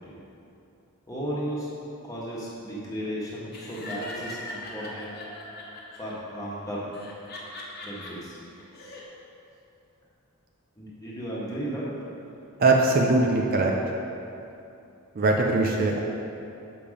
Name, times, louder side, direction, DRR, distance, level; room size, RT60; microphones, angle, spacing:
voice 1, 1.1-1.7 2.0-5.1 5.9-6.9 7.8-8.4 10.8-11.9, equal, 15° left, -7 dB, 1.5 m, -34 dB
Laughter, 3.5-6.1 6.9-8.1 8.6-9.0, left 2 dB, 45° left, 1.2 m, -40 dB
voice 2, 12.6-13.7 15.2-16.0, right 2 dB, 40° right, 1 dB, 0.5 m, -21 dB
6.9 x 5.2 x 5.2 m, 2.8 s
head